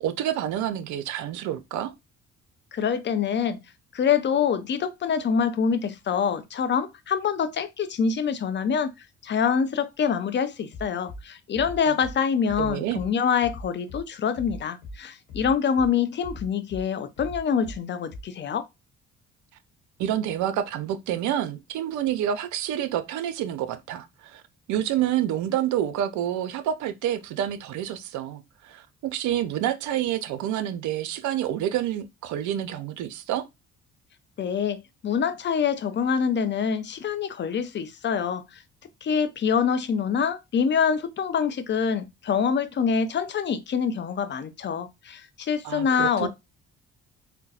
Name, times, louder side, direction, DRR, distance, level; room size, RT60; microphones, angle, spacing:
voice 1, 0.0-1.9 12.6-13.0 20.0-24.4 24.7-33.4 45.6-46.3, right 11 dB, 55° right, 0.6 m, -28 dB
voice 2, 2.7-3.6 3.9-8.9 9.2-18.6 34.4-38.6 39.0-46.3, left 7 dB, 30° left, 0.5 m, -25 dB
Bass drum, 10.7-11.2 11.5-12.1 12.5-13.1 13.4-14.0 14.3-15.0 15.3-15.9 16.2-16.8 17.2-17.8 18.1-18.2, left 1 dB, 75° left, 1.1 m, -39 dB
3.7 x 2.2 x 2.7 m
figure-of-eight pair, 50°, 36 cm